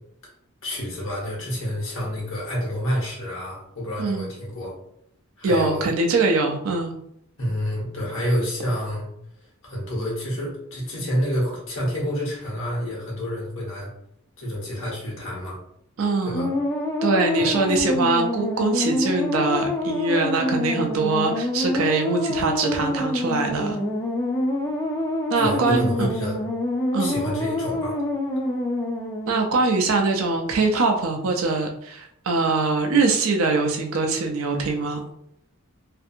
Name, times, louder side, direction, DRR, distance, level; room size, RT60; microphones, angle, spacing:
voice 1, 0.6-4.7 5.4-5.9 7.4-9.1 9.6-13.9 14.4-15.6 16.2-16.5 17.3-17.5 25.3-26.4 27.0-28.0, equal, 70° left, -3 dB, 1.0 m, -28 dB
voice 2, 4.0-4.3 5.4-6.9 16.0-16.5 17.0-23.8 25.3-26.1 26.9-27.2 29.3-35.0, right 3 dB, 75° right, 3 dB, 0.4 m, -23 dB
sound 1, 16.3-29.6, left 1 dB, 15° left, 0.3 m, -26 dB
2.5 x 2.5 x 2.6 m, 0.74 s
head